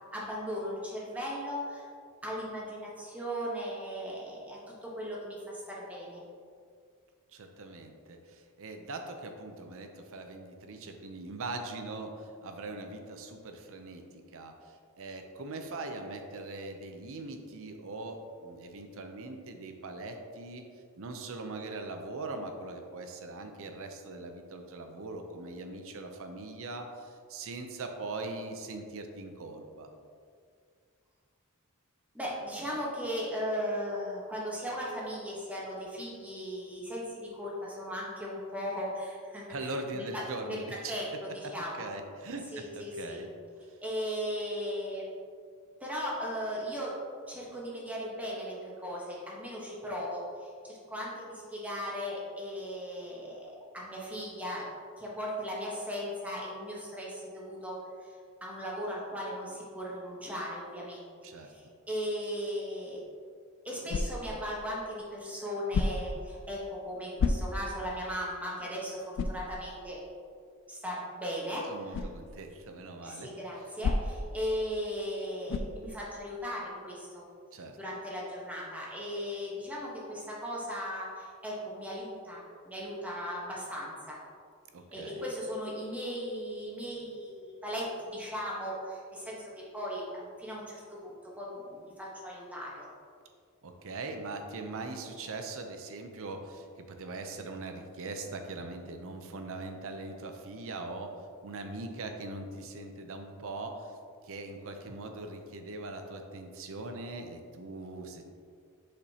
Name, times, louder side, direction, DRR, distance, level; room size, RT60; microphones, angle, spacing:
voice 1, 0.0-1.9 2.2-6.2 32.1-41.1 41.3-41.9 42.5-43.2 43.8-45.0 45.8-46.9 47.3-54.7 55.0-61.1 61.4-63.0 63.6-70.0 70.7-72.0 73.0-77.2 77.8-84.2 84.9-92.8, equal, 5° right, -5 dB, 1.2 m, -37 dB
voice 2, 7.3-14.0 14.3-20.6 21.0-29.9 39.5-40.9 41.7-43.3 43.7-43.8 61.2-61.5 71.7-73.3 77.5-77.8 84.7-85.2 93.6-104.0 104.2-108.2, right 2 dB, 65° right, 5 dB, 0.7 m, -41 dB
sound 1, 63.9-64.4 65.7-66.2 67.2-67.8 68.3-68.4 69.1-69.5 71.9-72.2 73.8-74.3 75.5-75.8, left 3 dB, 60° left, 0.3 m, -30 dB
6.8 x 5.1 x 2.9 m, 2.2 s
head